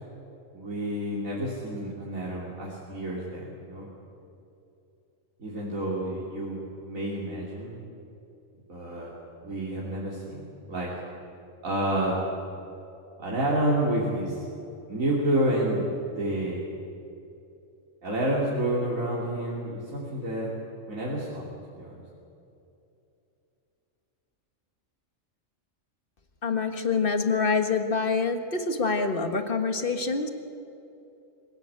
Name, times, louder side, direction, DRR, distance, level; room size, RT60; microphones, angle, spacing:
voice 1, 0.5-3.9 5.4-7.8 8.7-9.1 9.4-10.9 11.6-12.2 13.2-14.4 14.9-15.9 16.2-16.6 18.0-20.5 20.9-21.5 21.8-22.0, right 1 dB, 85° right, -5 dB, 3.5 m, -29 dB
voice 2, 26.4-30.3, left 4 dB, 45° left, 7 dB, 1.8 m, -26 dB
25.0 x 17.0 x 8.8 m, 2.8 s
omnidirectional pair, 1.4 m